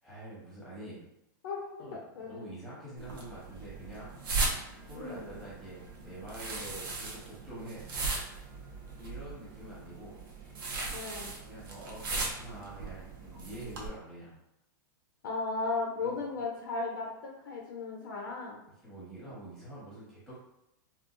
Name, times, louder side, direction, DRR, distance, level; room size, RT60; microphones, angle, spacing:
voice 1, 0.0-1.0 1.8-2.0 2.3-4.2 4.8-7.9 9.0-10.2 11.4-14.3 16.0-16.2 18.8-20.4, right 1 dB, ahead, -8 dB, 1.2 m, -46 dB
voice 2, 1.4-2.5 4.9-5.3 10.9-11.4 15.2-17.1 17.4-18.6, left 3 dB, 65° left, 0 dB, 0.6 m, -36 dB
sound 1, 3.0-13.9, right 3 dB, 85° right, 0.9 m, -38 dB
3.7 x 2.4 x 2.5 m, 0.85 s
supercardioid pair, 165°, 11 cm